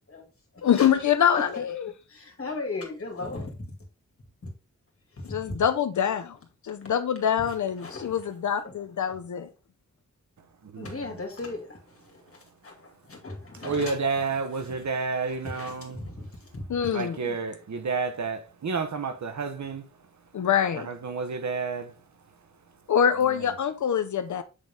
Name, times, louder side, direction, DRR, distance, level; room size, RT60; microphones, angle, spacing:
voice 1, 0.6-1.9 5.3-6.4 6.6-9.5 16.7-17.2 20.3-20.9 22.9-24.4, left 8 dB, 75° left, 0.6 m, -25 dB
voice 2, 2.1-3.8 5.1-5.6 6.8-6.9 7.4-8.3 8.6-8.8 10.8-14.0 14.5-14.8 15.2-16.6, left 3 dB, 50° left, 2.4 m, -38 dB
voice 3, 10.6-10.9 13.6-16.0 16.9-19.8 20.8-21.9, right 4 dB, 70° right, 1.0 m, -30 dB
8.1 x 3.9 x 3.5 m
wide cardioid pair, 115°, 30 cm